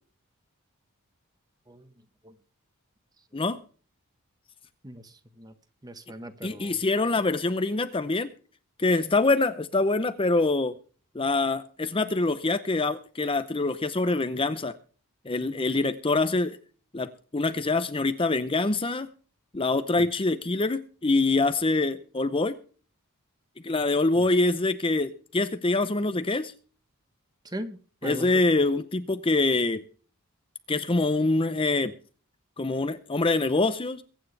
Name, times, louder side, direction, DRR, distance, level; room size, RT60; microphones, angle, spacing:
voice 1, 4.8-5.5 5.8-6.8 24.2-24.3 27.4-28.4, equal, 15° right, 1.3 m, -39 dB
voice 2, 6.4-8.3 8.8-10.7 11.1-14.7 15.2-16.6 16.9-19.1 19.5-22.6 23.6-26.5 28.0-29.8 30.7-31.9 32.6-34.0, left 2 dB, 25° left, 0.7 m, -25 dB
23.0 x 9.4 x 3.4 m
head